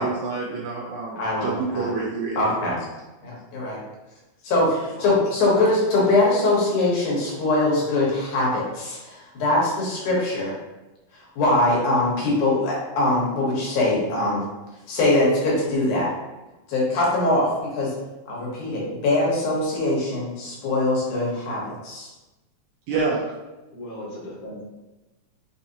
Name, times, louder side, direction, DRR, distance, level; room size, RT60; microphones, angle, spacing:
voice 1, 0.0-2.6 22.9-23.2, right 4 dB, 80° right, -4 dB, 1.9 m, -27 dB
voice 2, 1.2-1.9 2.4-2.8 3.2-3.8 4.4-10.5 11.1-14.4 14.9-16.1 16.7-17.9 18.3-22.1, left 2 dB, 80° left, -5 dB, 2.7 m, -22 dB
voice 3, 4.9-5.2 23.7-24.6, left 1 dB, 45° left, -7 dB, 1.2 m, -37 dB
5.6 x 2.7 x 2.8 m, 1.1 s
omnidirectional pair, 3.5 m